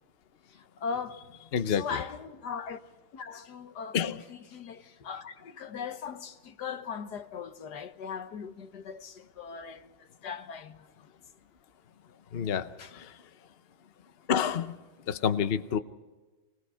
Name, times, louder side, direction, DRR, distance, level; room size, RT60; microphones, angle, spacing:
voice 1, 0.5-2.8 3.1-10.9 12.8-12.9, left 6 dB, 55° left, 1.5 m, -39 dB
voice 2, 1.5-2.0 3.9-4.2 12.3-13.2 14.3-14.8 15.1-15.8, left 7 dB, 90° left, 0.5 m, -28 dB
27.0 x 20.5 x 5.7 m
omnidirectional pair, 2.4 m